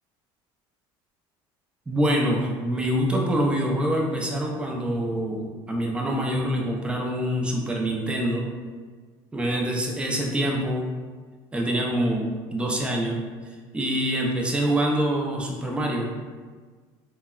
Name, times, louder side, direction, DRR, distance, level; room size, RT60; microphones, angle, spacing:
voice 1, 1.9-8.4 9.3-10.9 11.5-13.2 13.7-16.1, right 1 dB, 10° right, -1 dB, 0.4 m, -25 dB
2.8 x 2.0 x 2.3 m, 1.5 s
cardioid pair, 130°, 11 cm